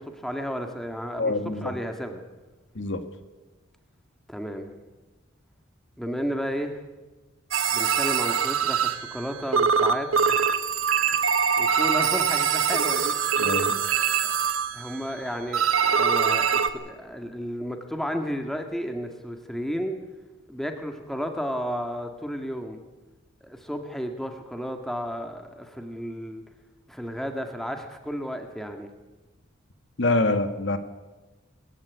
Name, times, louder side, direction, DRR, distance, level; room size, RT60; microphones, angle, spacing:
voice 1, 0.0-2.2 4.3-4.7 6.0-6.8 7.7-10.1 11.1-13.1 14.2-20.0 20.5-22.8 23.4-26.4 26.9-28.9, equal, ahead, 5 dB, 1.8 m, -33 dB
voice 2, 1.2-1.7 2.8-3.0 13.4-13.7 30.0-30.8, left 2 dB, 60° left, 9 dB, 1.7 m, -25 dB
sound 1, 7.5-9.3 9.5-15.1 15.5-16.7, right 7 dB, 85° right, 1.3 m, -23 dB
21.5 x 15.5 x 9.7 m, 1.2 s
head